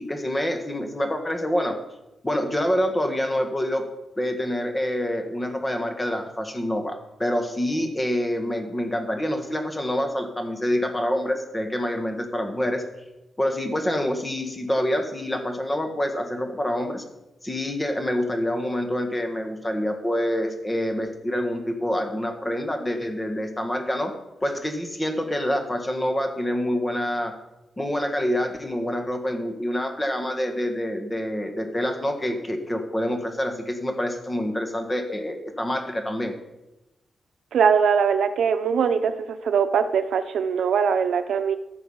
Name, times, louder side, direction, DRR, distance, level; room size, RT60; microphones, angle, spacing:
voice 1, 0.0-1.8 2.2-3.8 4.2-12.8 13.4-17.0 17.4-24.1 24.4-27.3 27.8-36.3, equal, 15° left, 5 dB, 1.6 m, -26 dB
voice 2, 37.5-39.1 39.4-41.6, right 6 dB, 80° right, 9 dB, 0.7 m, -21 dB
14.5 x 6.1 x 5.6 m, 0.96 s
wide cardioid pair, 130°, 0 cm